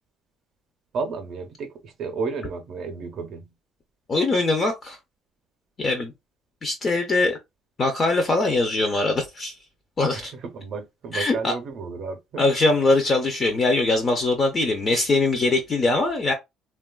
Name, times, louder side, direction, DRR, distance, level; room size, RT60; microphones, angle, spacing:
voice 1, 0.9-3.5 10.1-12.4, right 4 dB, 45° right, 0.5 m, -32 dB
voice 2, 4.1-5.0 5.8-6.1 6.6-7.4 7.8-9.5 10.0-10.3 11.1-11.5 12.4-16.3, left 2 dB, 25° left, 0.4 m, -22 dB
3.1 x 2.2 x 2.2 m
cardioid pair, 180°, 0 cm